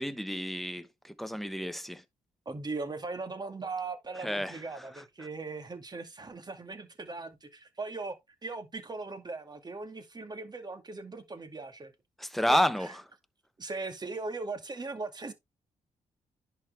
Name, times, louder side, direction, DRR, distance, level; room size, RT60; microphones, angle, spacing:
voice 1, 0.0-2.0 4.2-4.8 12.2-12.9, equal, ahead, 1.1 m, -30 dB
voice 2, 2.5-8.2 8.4-11.9 12.4-12.9 13.6-15.3, right 3 dB, 35° right, 2.3 m, -39 dB
10.5 x 4.8 x 3.4 m
cardioid pair, 65°, 13 cm